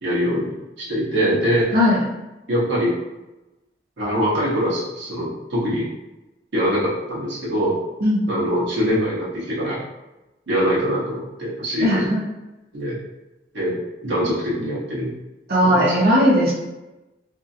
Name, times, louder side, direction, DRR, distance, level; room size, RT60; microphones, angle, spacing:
voice 1, 0.0-1.7 2.5-3.0 4.0-5.9 6.5-7.8 8.3-9.8 10.5-12.1 12.7-12.9 13.5-15.1 15.6-15.9, equal, 75° right, -7 dB, 1.0 m, -23 dB
voice 2, 11.8-12.2 15.5-16.5, equal, 55° right, -3 dB, 0.8 m, -17 dB
2.7 x 2.6 x 2.5 m, 1.0 s
head